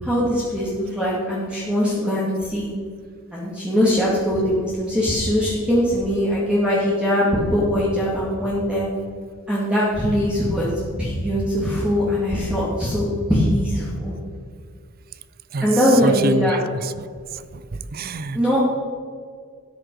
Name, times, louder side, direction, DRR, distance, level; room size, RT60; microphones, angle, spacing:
voice 1, 0.0-2.7 3.3-8.9 9.5-10.7 11.0-14.1 15.6-16.6 18.3-18.6, equal, 5° right, -8 dB, 2.4 m, -21 dB
voice 2, 15.5-17.0 17.3-18.6, right 3 dB, 45° right, 15 dB, 0.5 m, -27 dB
13.0 x 9.9 x 4.8 m, 2.1 s
head